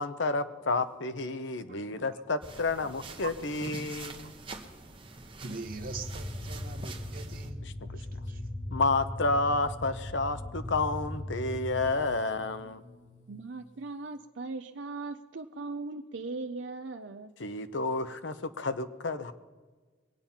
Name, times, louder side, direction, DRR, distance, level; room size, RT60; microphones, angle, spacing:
voice 1, 0.0-4.3 8.7-12.8 17.4-19.3, left 3 dB, 70° left, 0.9 m, -30 dB
sound 1, 2.4-7.5, right 3 dB, 25° right, 1.2 m, -45 dB
voice 2, 5.4-8.4, right 4 dB, 45° right, 1.2 m, -43 dB
sound 2, 5.6-11.9, left 1 dB, 90° left, 4.3 m, -39 dB
sound 3, 6.1-13.8, equal, 25° left, 5.9 m, -51 dB
voice 3, 13.3-17.3, right 3 dB, 65° right, 0.6 m, -39 dB
22.0 x 8.9 x 5.7 m
head